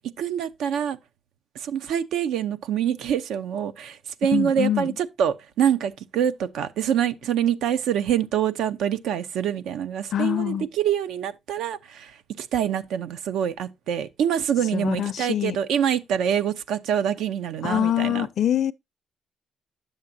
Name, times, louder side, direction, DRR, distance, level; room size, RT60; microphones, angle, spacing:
voice 1, 0.2-1.0 1.5-18.3, right 9 dB, 85° right, 0.7 m, -25 dB
voice 2, 4.3-4.9 10.1-10.7 14.7-15.6 17.6-18.7, left 10 dB, 65° left, 0.5 m, -24 dB
9.8 x 7.3 x 2.6 m
cardioid pair, 90°, 0 cm